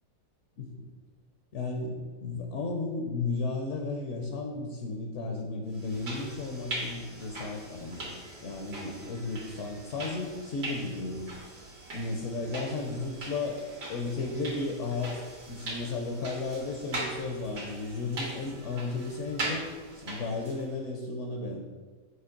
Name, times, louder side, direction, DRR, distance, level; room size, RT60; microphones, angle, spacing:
voice 1, 0.6-0.9 1.5-8.2 8.4-11.3 11.9-13.6 13.9-19.6 20.0-21.6, left 3 dB, 60° left, 3 dB, 0.9 m, -34 dB
sound 1, 5.7-20.7, right 2 dB, 80° right, 2.2 m, -40 dB
7.7 x 3.1 x 5.8 m, 1.5 s
omnidirectional pair, 1.8 m